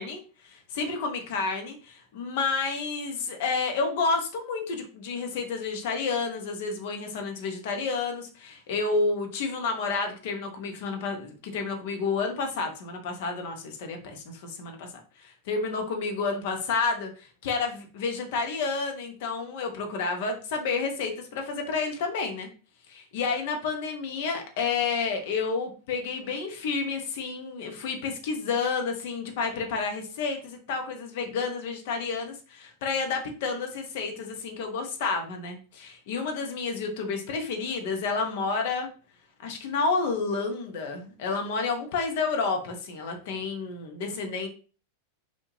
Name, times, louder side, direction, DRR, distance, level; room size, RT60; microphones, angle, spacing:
voice 1, 0.0-14.9 15.2-22.5 22.9-38.9 39.4-44.5, left 4 dB, 50° left, 4 dB, 0.6 m, -30 dB
2.6 x 2.1 x 3.0 m, 0.38 s
figure-of-eight pair, 90°, 0 cm